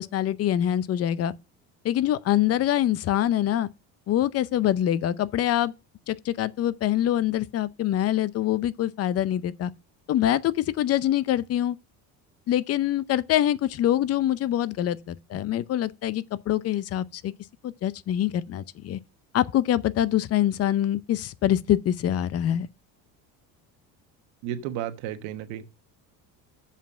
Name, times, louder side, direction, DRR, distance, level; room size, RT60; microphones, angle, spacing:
voice 1, 0.0-1.3 1.8-3.7 4.1-5.7 6.1-9.7 10.1-11.8 12.5-17.3 17.6-19.0 19.3-22.7, left 12 dB, 40° left, 0.6 m, -25 dB
voice 2, 24.4-25.7, right 11 dB, 85° right, 1.3 m, -33 dB
7.4 x 5.8 x 7.2 m
cardioid pair, 130°, 38 cm